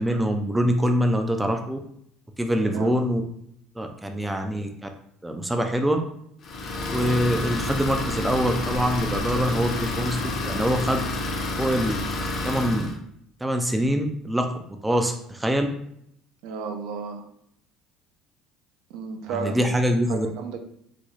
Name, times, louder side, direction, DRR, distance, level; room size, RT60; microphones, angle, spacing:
voice 1, 0.0-1.8 2.4-3.2 3.8-4.9 5.2-6.0 6.9-11.0 11.6-12.0 12.4-12.9 13.4-14.5 14.8-15.7 19.3-20.3, equal, 5° right, 4 dB, 0.3 m, -24 dB
voice 2, 2.6-2.9 16.4-17.2 18.9-19.7 20.1-20.6, right 5 dB, 75° right, 5 dB, 0.5 m, -33 dB
Idling, 6.4-13.0, left 2 dB, 40° left, 0.6 m, -29 dB
3.9 x 2.2 x 3.1 m, 0.71 s
cardioid pair, 145°, 0 cm